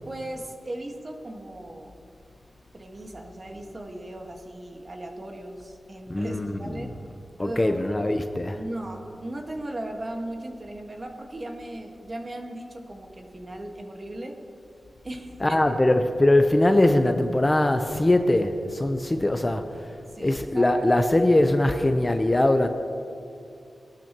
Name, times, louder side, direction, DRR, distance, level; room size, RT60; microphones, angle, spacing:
voice 1, 0.0-1.9 2.7-7.0 7.4-7.9 8.5-14.4 15.0-15.6 20.1-20.7, right 1 dB, 40° right, 2 dB, 1.6 m, -37 dB
voice 2, 6.1-7.0 7.4-8.6 15.4-19.6 20.2-22.7, left 1 dB, 20° left, 7 dB, 0.7 m, -21 dB
21.5 x 12.0 x 3.0 m, 2.6 s
wide cardioid pair, 85°, 0 cm